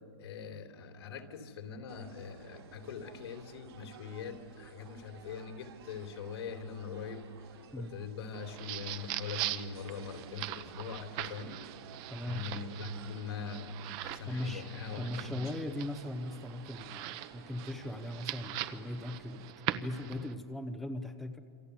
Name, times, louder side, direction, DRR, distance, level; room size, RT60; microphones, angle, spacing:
voice 1, 0.2-7.3 7.8-11.6 12.2-15.5, left 5 dB, 80° left, 6 dB, 3.6 m, -42 dB
sound 1, 1.9-19.5, right 7 dB, 70° right, 5.1 m, -55 dB
sound 2, 8.3-20.3, right 13 dB, 30° right, 0.9 m, -41 dB
voice 2, 12.1-12.5 14.3-14.7 15.0-19.5 19.7-21.4, left 1 dB, ahead, 5 dB, 0.8 m, -39 dB
27.5 x 25.5 x 8.3 m, 2.1 s
supercardioid pair, 165°, 14 cm